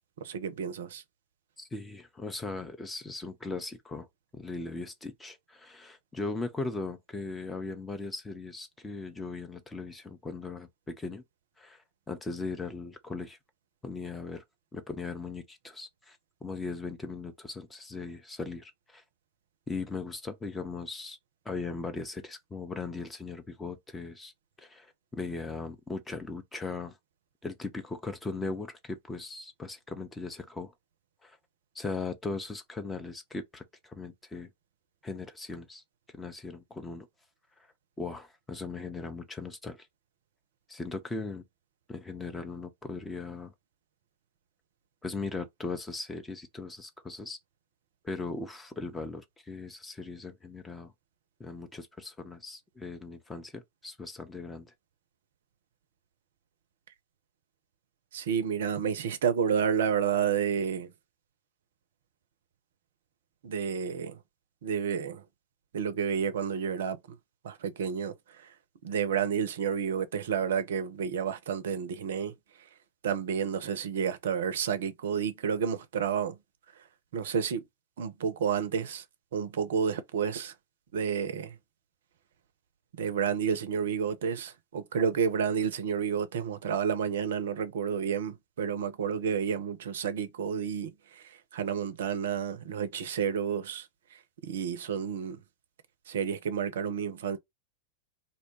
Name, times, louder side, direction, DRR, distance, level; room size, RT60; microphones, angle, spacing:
voice 1, 0.2-1.0 58.1-60.9 63.4-64.2 64.6-65.2 65.7-67.0 67.4-68.5 68.8-72.3 73.0-76.4 77.1-77.6 78.0-79.0 79.3-80.5 80.9-81.6 83.0-95.4 96.1-97.4, right 7 dB, 60° right, 0.4 m, -30 dB
voice 2, 1.6-4.1 4.3-11.2 11.6-11.8 12.1-13.4 13.8-14.4 14.7-19.0 19.7-21.2 21.5-24.3 24.6-27.0 27.4-30.7 31.2-31.4 31.7-34.5 35.0-35.8 36.1-37.1 38.0-39.9 40.7-41.4 41.9-43.5 45.0-47.4 48.0-50.9 51.4-54.7, left 3 dB, 10° left, 0.5 m, -38 dB
2.6 x 2.1 x 2.7 m
figure-of-eight pair, 90°, 0 cm